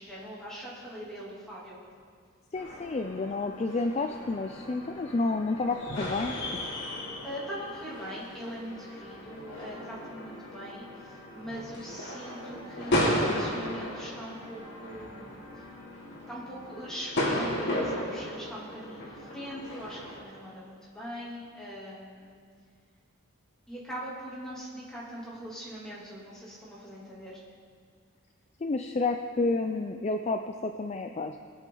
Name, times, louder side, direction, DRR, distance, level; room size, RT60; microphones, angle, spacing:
voice 1, 0.0-1.8 6.7-6.8 7.2-15.3 15.5-15.7 16.3-22.4 23.7-27.4, equal, 5° left, -7 dB, 2.8 m, -41 dB
sound 1, 2.5-20.2, left 1 dB, 55° left, 3.0 m, -35 dB
voice 2, 2.5-6.4 28.6-31.4, left 3 dB, 30° left, 6 dB, 0.4 m, -30 dB
21.0 x 7.5 x 3.9 m, 2.1 s
head